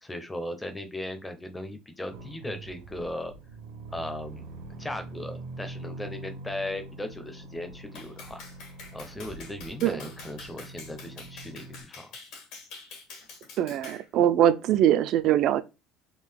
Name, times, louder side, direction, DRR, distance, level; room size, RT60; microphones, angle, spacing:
voice 1, 0.0-3.3 3.9-4.4 4.8-8.4 8.9-12.0, left 1 dB, 10° left, 0.6 m, -37 dB
sound 1, 2.1-11.8, right 3 dB, 80° right, 0.9 m, -44 dB
Clapping, 7.9-14.1, left 4 dB, 70° left, 1.6 m, -46 dB
voice 2, 13.6-15.6, right 11 dB, 55° right, 0.4 m, -22 dB
3.7 x 2.4 x 3.4 m
cardioid pair, 140°, 0 cm